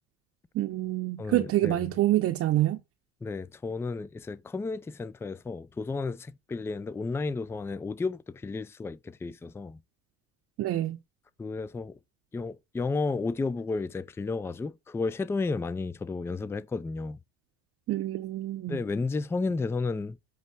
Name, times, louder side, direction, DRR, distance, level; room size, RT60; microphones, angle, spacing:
voice 1, 0.5-2.8 10.6-11.0 17.9-18.8, right 15 dB, 45° right, 0.8 m, -27 dB
voice 2, 1.2-1.8 3.2-9.8 11.4-12.0 12.3-17.2 18.7-20.2, left 3 dB, 10° left, 0.4 m, -32 dB
8.5 x 3.0 x 6.2 m
hypercardioid pair, 70°, 31 cm